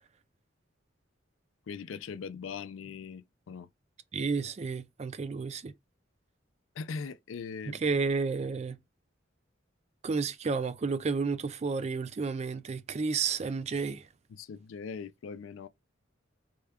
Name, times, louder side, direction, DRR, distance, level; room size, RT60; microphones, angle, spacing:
voice 1, 1.7-3.7 6.8-7.9 14.3-15.7, left 5 dB, 90° left, 0.4 m, -40 dB
voice 2, 4.1-5.7 7.7-8.8 10.0-14.1, right 4 dB, 35° right, 0.4 m, -31 dB
3.6 x 2.3 x 3.4 m
head